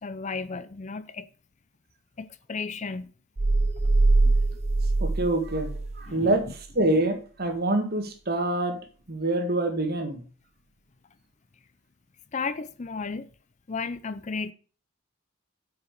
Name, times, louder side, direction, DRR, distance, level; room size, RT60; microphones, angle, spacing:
voice 1, 0.0-1.3 2.2-3.1 4.2-4.3 6.1-6.4 12.3-13.3 13.7-14.5, left 4 dB, 35° left, 0.5 m, -34 dB
sound 1, 3.4-6.1, right 2 dB, 30° right, 0.5 m, -23 dB
voice 2, 5.0-8.8 9.1-10.2, right 2 dB, 45° right, 1.7 m, -26 dB
8.1 x 5.8 x 6.6 m
head